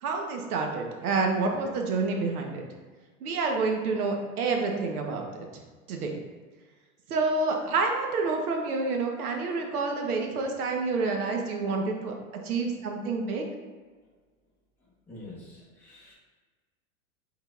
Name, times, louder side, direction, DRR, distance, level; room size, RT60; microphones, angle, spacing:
voice 1, 0.0-2.7 3.2-5.5 5.9-6.2 7.1-12.1 12.4-13.4, right 3 dB, 80° right, 2 dB, 1.0 m, -28 dB
voice 2, 15.1-16.1, left 2 dB, 5° left, -9 dB, 1.0 m, -46 dB
5.7 x 3.9 x 2.4 m, 1.4 s
supercardioid pair, 155°, 44 cm